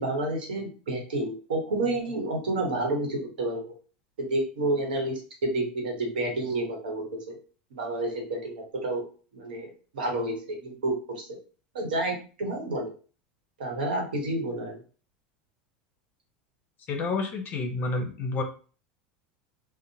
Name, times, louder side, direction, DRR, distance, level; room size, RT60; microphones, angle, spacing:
voice 1, 0.0-3.7 4.2-7.4 7.7-9.0 9.3-11.3 11.7-12.9 13.6-14.8, right 2 dB, 85° right, 1 dB, 1.0 m, -30 dB
voice 2, 16.9-18.4, left 3 dB, 40° left, 3 dB, 0.7 m, -29 dB
2.8 x 2.1 x 2.7 m, 0.37 s
hypercardioid pair, 90°, 5 cm